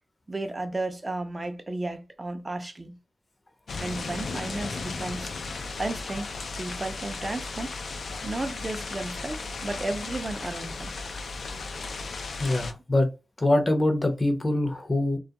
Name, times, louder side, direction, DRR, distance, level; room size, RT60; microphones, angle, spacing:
voice 1, 0.3-3.0 3.8-5.5 5.8-6.3 6.6-7.7 8.2-10.9, right 2 dB, 30° right, 0.5 m, -33 dB
sound 1, 3.7-12.7, left 3 dB, 70° left, 0.3 m, -35 dB
voice 2, 12.4-13.1 13.4-15.2, left 1 dB, 35° left, 0.6 m, -24 dB
2.2 x 2.1 x 2.8 m
cardioid pair, 55°, 0 cm